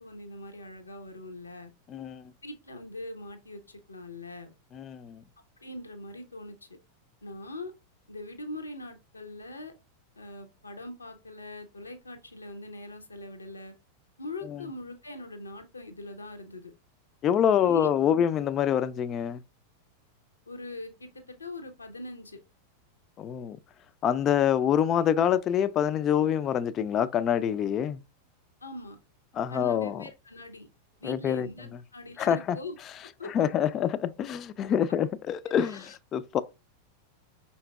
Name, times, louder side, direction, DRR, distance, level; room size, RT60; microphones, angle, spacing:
voice 1, 0.0-1.7 2.4-4.5 5.6-6.7 7.2-7.7 8.1-9.7 10.2-13.7 14.2-16.7 17.5-18.2 20.5-22.4 28.6-29.0 29.5-30.7 31.0-32.8 33.0-33.3 35.4-36.0, left 2 dB, 75° left, 0.7 m, -42 dB
voice 2, 1.9-2.3 4.7-5.2 14.5-14.6 17.2-19.4 23.2-23.6 24.0-28.0 29.4-30.0 31.0-31.5 32.2-32.6 33.3-36.4, left 9 dB, 30° left, 0.4 m, -26 dB
5.6 x 4.2 x 2.2 m
figure-of-eight pair, 90°, 0 cm